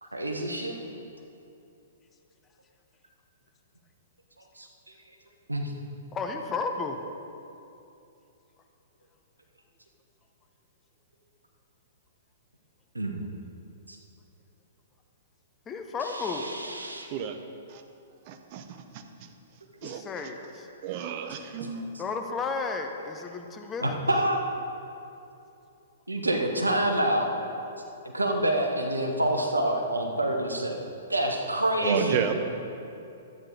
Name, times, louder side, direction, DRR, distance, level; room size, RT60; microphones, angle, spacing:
voice 1, 0.0-0.8 4.6-4.7 5.5-5.7 12.9-13.1 13.9-14.0 16.0-17.1 23.8-24.5 26.1-27.3 28.1-30.8 31.1-32.3, right 1 dB, 85° right, 2 dB, 1.2 m, -27 dB
voice 2, 6.1-7.0 15.7-16.5 19.8-20.7 22.0-24.0, left 4 dB, 20° left, 4 dB, 0.8 m, -33 dB
voice 3, 18.3-18.6 19.8-20.0 20.8-21.9 31.8-32.3, right 9 dB, 40° right, 6 dB, 0.8 m, -31 dB
12.5 x 8.9 x 4.0 m, 2.7 s
figure-of-eight pair, 115°, 0 cm